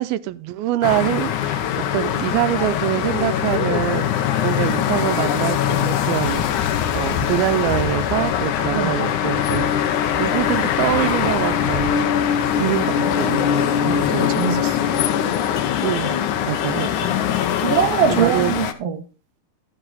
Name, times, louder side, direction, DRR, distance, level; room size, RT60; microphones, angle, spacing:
voice 1, 0.0-1.6 1.9-9.7 10.2-13.4 13.9-14.1 15.8-17.2 18.1-18.5, right 15 dB, 85° right, 2.5 m, -24 dB
sound 1, 0.8-18.7, left 9 dB, 70° left, 2.1 m, -22 dB
sound 2, 6.2-13.2, left 7 dB, 90° left, 3.2 m, -31 dB
voice 2, 13.8-14.9 17.6-19.0, right 8 dB, 60° right, 1.7 m, -22 dB
13.0 x 7.8 x 4.1 m
omnidirectional pair, 4.2 m